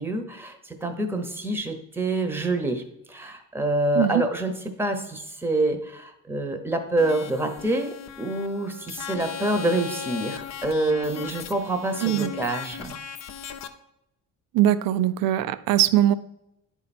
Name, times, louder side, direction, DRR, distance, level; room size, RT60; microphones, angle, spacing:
voice 1, 0.0-2.8 3.1-12.9, right 2 dB, 5° right, 6 dB, 0.9 m, -27 dB
sound 1, 7.0-13.7, left 7 dB, 50° left, 0.7 m, -38 dB
voice 2, 12.0-12.3 14.5-16.1, right 12 dB, 75° right, 14 dB, 0.6 m, -21 dB
10.5 x 4.5 x 4.2 m, 0.83 s
cardioid pair, 130°, 35 cm